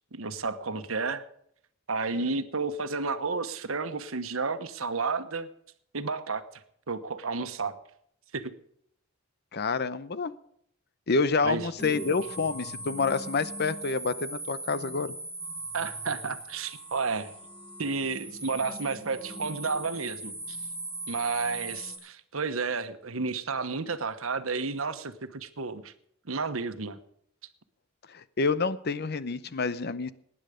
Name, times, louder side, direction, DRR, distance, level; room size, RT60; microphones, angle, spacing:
voice 1, 0.1-1.2 1.9-5.5 5.9-7.7 8.3-8.5 11.4-11.7 15.7-17.3 17.8-20.6 21.1-25.9 26.3-27.0, right 4 dB, 90° right, 10 dB, 1.2 m, -32 dB
voice 2, 9.5-10.3 11.1-15.1 28.1-30.1, left 4 dB, 55° left, 15 dB, 0.7 m, -28 dB
sound 1, 11.8-22.0, right 2 dB, 5° left, 6.1 m, -39 dB
19.0 x 9.9 x 5.1 m, 0.70 s
head